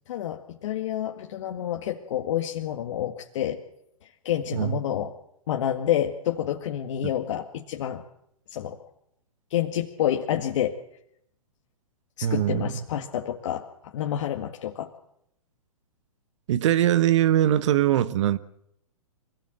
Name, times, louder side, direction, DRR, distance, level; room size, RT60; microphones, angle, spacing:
voice 1, 0.1-3.6 4.0-5.1 5.5-8.0 8.5-8.8 9.5-10.8 12.2-14.9, left 11 dB, 55° left, 2 dB, 2.0 m, -29 dB
voice 2, 12.2-12.7 16.5-18.4, right 12 dB, 55° right, 14 dB, 1.1 m, -21 dB
24.5 x 17.5 x 7.9 m, 0.76 s
hypercardioid pair, 125°, 19 cm